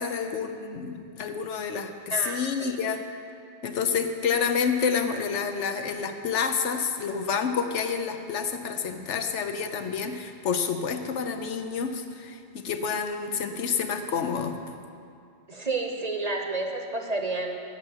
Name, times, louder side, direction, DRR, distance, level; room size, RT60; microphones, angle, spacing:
voice 1, 0.0-3.2 3.6-14.6, left 6 dB, 90° left, 7 dB, 1.1 m, -29 dB
voice 2, 15.5-17.6, right 2 dB, 35° right, 3 dB, 1.0 m, -30 dB
10.5 x 6.6 x 8.9 m, 2.4 s
omnidirectional pair, 1.2 m